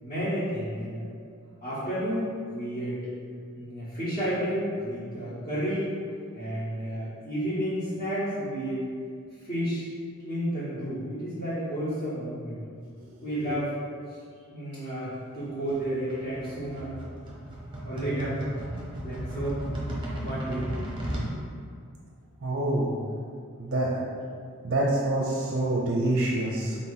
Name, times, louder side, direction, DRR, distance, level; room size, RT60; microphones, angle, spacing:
voice 1, 0.0-1.0 1.6-3.1 3.5-6.0 6.3-8.9 9.4-9.9 10.2-12.6 13.2-13.8 14.1-14.2 14.5-16.9 17.8-18.4 19.0-19.6 20.2-20.7, equal, 35° left, -13 dB, 1.0 m, -31 dB
sound 1, 15.7-21.3, right 1 dB, 20° right, 0.8 m, -34 dB
voice 2, 22.4-23.0 23.6-24.0 24.6-26.8, right 1 dB, 50° right, -2 dB, 0.5 m, -26 dB
3.8 x 2.8 x 4.0 m, 2.2 s
head